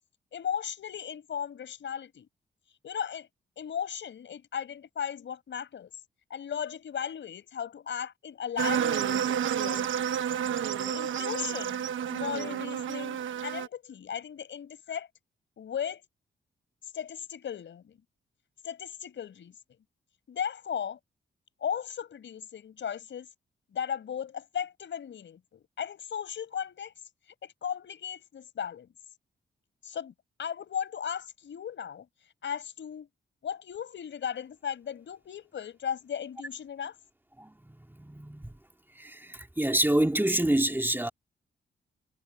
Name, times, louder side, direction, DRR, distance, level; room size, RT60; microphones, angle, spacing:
voice 1, 0.3-2.3 2.8-3.3 3.6-5.9 6.3-10.1 10.8-15.1 15.6-16.0 16.9-18.0 18.6-19.5 20.3-21.0 21.6-23.3 23.7-26.9 27.4-28.9 29.8-30.1 30.4-32.1 32.4-33.1 33.4-37.0, left 8 dB, 75° left, 5.7 m, -36 dB
sound 1, 8.6-13.7, right 9 dB, 85° right, 1.3 m, -30 dB
voice 2, 37.4-38.5 38.9-41.1, right 1 dB, 10° right, 2.9 m, -27 dB
cardioid pair, 65°, 20 cm